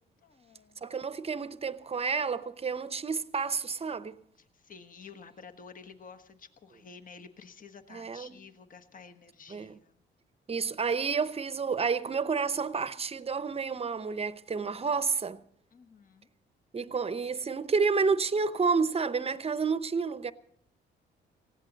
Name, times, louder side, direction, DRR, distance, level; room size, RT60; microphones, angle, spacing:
voice 1, 0.2-0.9 4.4-9.9 15.7-16.3, left 5 dB, 45° left, 1.3 m, -51 dB
voice 2, 0.8-4.2 7.9-8.4 9.5-9.8 10.5-15.4 16.7-20.3, right 5 dB, 30° right, 0.8 m, -30 dB
19.0 x 16.0 x 4.0 m
cardioid pair, 90°, 20 cm